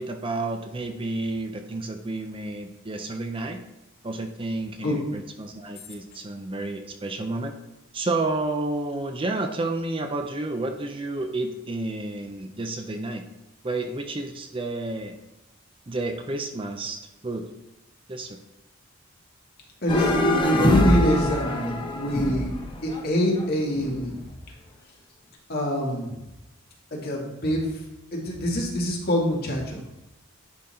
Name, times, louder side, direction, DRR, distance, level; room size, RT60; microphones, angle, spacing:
voice 1, 0.0-3.6 4.0-7.5 7.9-13.2 13.6-15.1 15.9-17.5 18.1-18.4, right 2 dB, 25° right, 5 dB, 0.5 m, -30 dB
voice 2, 19.8-22.5 22.8-24.2 25.5-26.2 26.9-27.8 28.1-29.8, equal, 50° left, -2 dB, 2.0 m, -25 dB
sound 1, 19.9-24.1, left 1 dB, 25° left, 0.9 m, -25 dB
10.5 x 4.1 x 4.3 m, 0.95 s
head